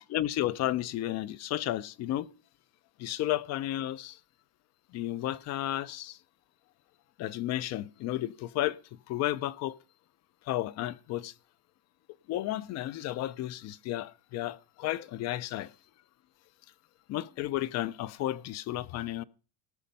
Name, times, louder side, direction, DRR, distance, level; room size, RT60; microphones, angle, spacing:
voice 1, 0.1-2.3 3.0-4.2 4.9-6.2 7.2-8.8 9.1-9.8 10.5-11.3 12.3-15.7 17.1-19.2, left 14 dB, 45° left, 0.5 m, -32 dB
18.5 x 6.4 x 5.3 m
cardioid pair, 155°, 39 cm